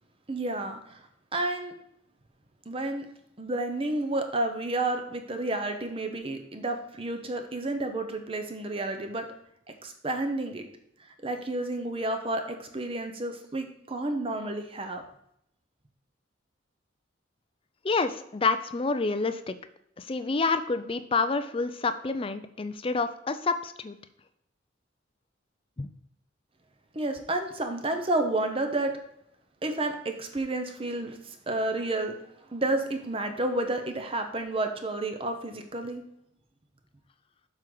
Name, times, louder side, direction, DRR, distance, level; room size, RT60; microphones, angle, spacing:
voice 1, 0.3-1.0 1.3-1.7 2.7-3.1 3.4-9.3 9.8-10.6 11.2-15.0 26.9-28.9 29.6-32.2 32.5-36.0, right 2 dB, 30° right, 6 dB, 0.8 m, -30 dB
voice 2, 17.8-19.6 20.0-24.0 25.8-25.9, left 4 dB, 30° left, 11 dB, 0.5 m, -28 dB
7.5 x 6.2 x 3.9 m, 0.75 s
head